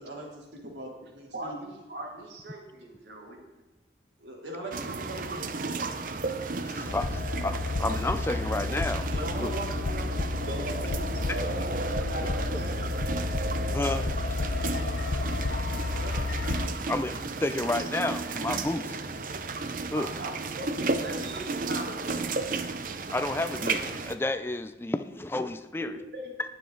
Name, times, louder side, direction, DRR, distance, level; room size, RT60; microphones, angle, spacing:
voice 1, 0.0-1.6 4.2-6.0 9.0-10.7 15.9-16.2, right 1 dB, 90° right, -2 dB, 3.2 m, -40 dB
voice 2, 1.3-3.4 10.5-12.9 19.9-22.4 25.8-26.3, right 1 dB, 70° right, 1 dB, 2.2 m, -40 dB
sound 1, 4.7-24.1, right 3 dB, 50° right, 0.6 m, -33 dB
voice 3, 6.6-9.1 9.4-9.5 11.3-11.4 13.7-14.4 16.9-17.1 17.4-19.1 19.9-20.1 23.1-26.0, left 2 dB, 15° left, 10 dB, 0.3 m, -31 dB
sound 2, 6.9-16.7, left 3 dB, 70° left, 0.7 m, -31 dB
19.5 x 7.0 x 3.9 m, 1.1 s
head